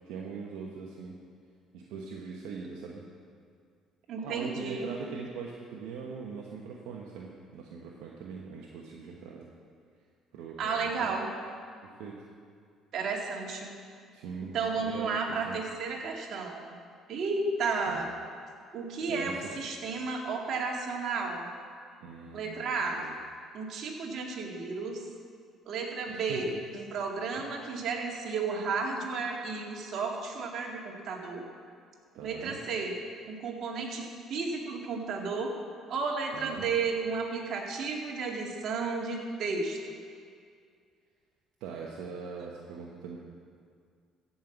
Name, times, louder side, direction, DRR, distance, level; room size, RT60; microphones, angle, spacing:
voice 1, 0.0-1.2 1.7-3.0 4.2-9.5 10.3-11.2 11.8-12.2 14.1-15.1 15.4-15.6 17.9-18.0 19.1-19.6 22.0-23.2 26.1-26.5 27.3-27.4 32.1-32.6 36.3-36.7 41.6-43.2, right 5 dB, 80° right, -2 dB, 1.2 m, -41 dB
voice 2, 4.1-4.9 10.6-11.3 12.9-13.7 14.5-16.6 17.1-18.1 18.7-21.5 22.3-23.0 23.5-25.0 25.7-31.4 32.2-32.9 33.3-35.5 35.9-40.0, right 4 dB, 60° right, 0 dB, 2.2 m, -33 dB
15.0 x 5.6 x 7.3 m, 2.2 s
supercardioid pair, 80°, 0 cm